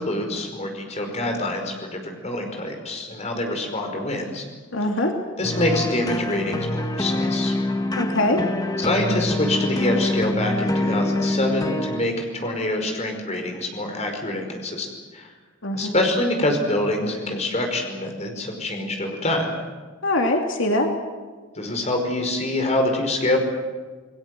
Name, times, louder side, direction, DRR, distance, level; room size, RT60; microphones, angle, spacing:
voice 1, 0.0-4.4 5.4-7.5 8.8-14.9 15.1-15.3 15.7-19.5 21.6-23.4, left 1 dB, 35° left, 4 dB, 5.2 m, -25 dB
voice 2, 4.7-5.1 8.0-8.4 15.6-15.9 20.0-20.9, left 1 dB, 90° left, 3 dB, 2.7 m, -22 dB
sound 1, 5.4-12.0, left 2 dB, 20° left, 1.4 m, -25 dB
29.0 x 20.5 x 7.9 m, 1.4 s
head